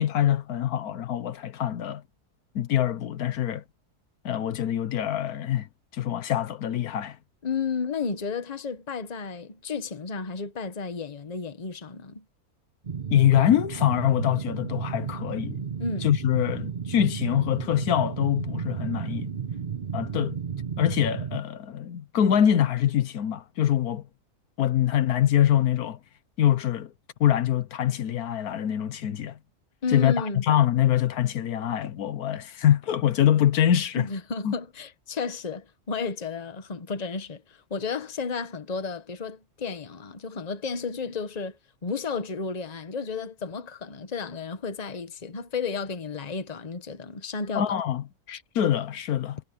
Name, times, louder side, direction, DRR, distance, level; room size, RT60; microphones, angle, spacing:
voice 1, 0.0-2.0 2.5-3.6 4.2-5.7 5.9-7.2 13.1-15.6 16.0-19.3 19.9-20.4 20.8-24.0 24.6-26.0 26.4-26.9 27.2-29.4 29.9-34.1 34.4-34.5 47.5-49.4, left 10 dB, 75° left, 1.3 m, -24 dB
voice 2, 7.4-12.2 15.8-16.1 29.8-30.4 34.0-47.7, left 5 dB, 30° left, 1.2 m, -32 dB
sound 1, 12.8-21.4, right 7 dB, 40° right, 0.8 m, -33 dB
omnidirectional pair, 1.6 m